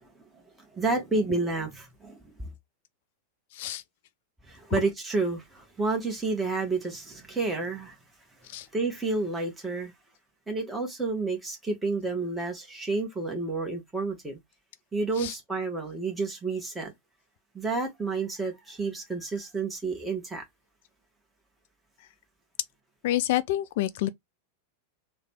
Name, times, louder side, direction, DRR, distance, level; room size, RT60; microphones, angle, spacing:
voice 1, 0.7-2.5 4.4-7.9 8.7-9.9 10.5-14.4 14.9-16.9 17.5-20.4, right 3 dB, 10° right, 1.2 m, -30 dB
voice 2, 23.0-24.1, left 14 dB, 50° left, 0.3 m, -27 dB
3.2 x 2.2 x 4.2 m
figure-of-eight pair, 90°, 0 cm